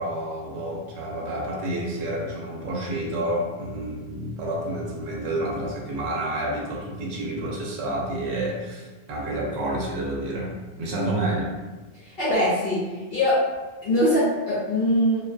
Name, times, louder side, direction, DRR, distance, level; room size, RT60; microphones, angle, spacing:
voice 1, 0.0-11.5, right 1 dB, 70° right, -3 dB, 0.9 m, -29 dB
voice 2, 12.0-13.4 13.8-15.2, left 1 dB, 60° left, -9 dB, 0.8 m, -22 dB
2.4 x 2.2 x 2.4 m, 1.2 s
omnidirectional pair, 1.2 m